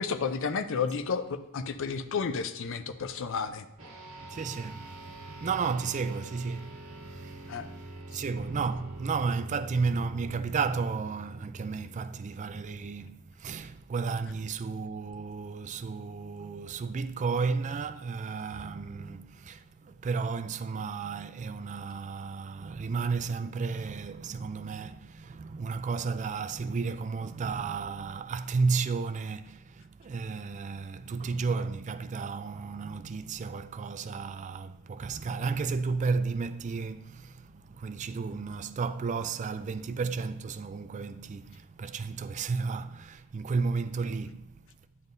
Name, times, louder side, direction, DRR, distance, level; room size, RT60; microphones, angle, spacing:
voice 1, 0.0-3.7 7.5-7.7 8.1-8.2, left 5 dB, 60° left, 0.5 m, -32 dB
sound 1, 3.8-13.5, right 1 dB, 60° right, 1.9 m, -45 dB
voice 2, 4.2-44.6, right 4 dB, 35° right, 0.3 m, -33 dB
9.7 x 7.2 x 2.6 m
head